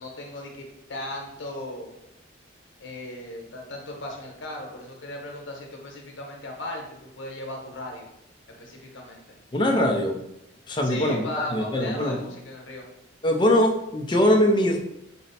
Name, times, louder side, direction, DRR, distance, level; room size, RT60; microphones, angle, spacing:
voice 1, 0.0-2.0 2.8-8.1 8.6-9.2 10.8-12.9, left 1 dB, 70° left, 1 dB, 0.9 m, -37 dB
voice 2, 9.5-10.2 10.7-12.2 13.2-14.8, left 1 dB, 25° left, 2 dB, 0.4 m, -22 dB
4.2 x 2.0 x 4.1 m, 0.83 s
head